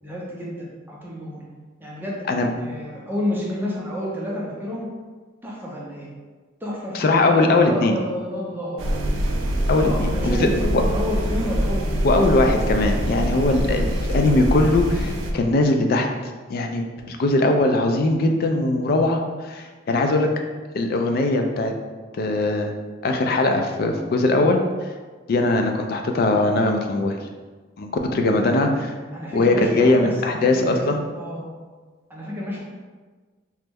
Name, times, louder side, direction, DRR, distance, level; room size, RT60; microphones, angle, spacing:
voice 1, 0.0-1.4 1.8-4.9 5.4-6.1 6.6-9.0 9.8-12.3 13.7-13.9 28.0-28.8 29.1-30.8 31.1-31.5 32.1-32.6, left 1 dB, 10° right, -5 dB, 0.5 m, -30 dB
voice 2, 6.9-7.9 9.7-10.4 10.7-10.8 12.0-16.1 16.5-20.3 20.7-21.7 22.2-22.7 23.0-24.6 25.3-27.2 27.8-28.9 29.3-31.0, left 2 dB, 50° left, 4 dB, 0.3 m, -20 dB
sound 1, 8.8-15.3, equal, 80° right, 0.4 m, -24 dB
3.0 x 2.1 x 3.4 m, 1.4 s
head